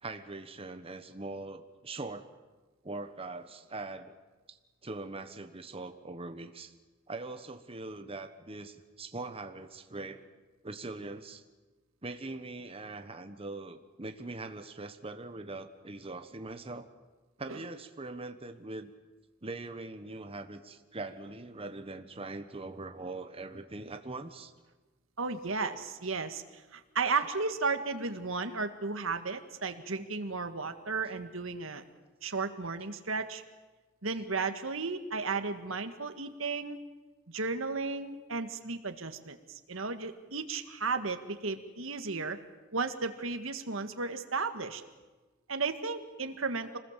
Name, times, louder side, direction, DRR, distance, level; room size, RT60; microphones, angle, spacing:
voice 1, 0.0-2.3 2.8-4.2 4.5-4.6 4.8-6.7 7.1-10.2 10.6-11.4 12.0-16.9 17.4-18.9 19.4-24.5, right 2 dB, 30° right, 7 dB, 1.2 m, -42 dB
voice 2, 25.2-31.8 32.2-33.4 34.0-36.8 37.3-42.4 42.7-44.8 45.5-46.8, right 4 dB, 80° right, 8 dB, 1.7 m, -34 dB
26.5 x 20.0 x 7.4 m, 1.2 s
head